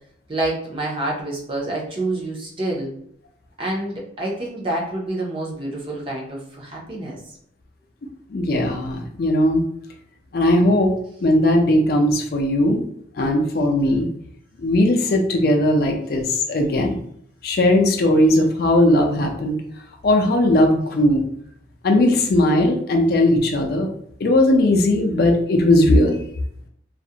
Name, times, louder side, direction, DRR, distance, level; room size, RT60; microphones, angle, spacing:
voice 1, 0.3-2.9 3.6-7.2, right 1 dB, 30° right, -3 dB, 0.5 m, -27 dB
voice 2, 8.3-9.6 10.3-10.9 11.2-12.8 13.2-14.1 14.6-17.0 17.4-19.6 20.0-21.2 21.8-23.9 24.2-26.3, left 1 dB, 55° left, 2 dB, 0.4 m, -18 dB
2.3 x 2.1 x 2.7 m, 0.68 s
head